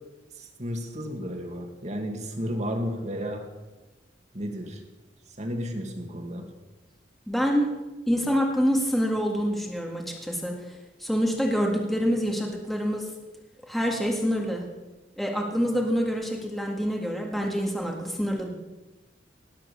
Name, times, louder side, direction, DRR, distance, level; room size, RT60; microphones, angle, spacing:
voice 1, 0.4-3.5 4.3-4.8 5.4-6.5, equal, 40° right, 3 dB, 2.3 m, -33 dB
voice 2, 7.3-7.7 8.1-10.5 11.0-13.1 13.7-14.6 15.2-18.5, equal, ahead, 0 dB, 1.8 m, -26 dB
18.5 x 7.6 x 7.2 m, 1.1 s
head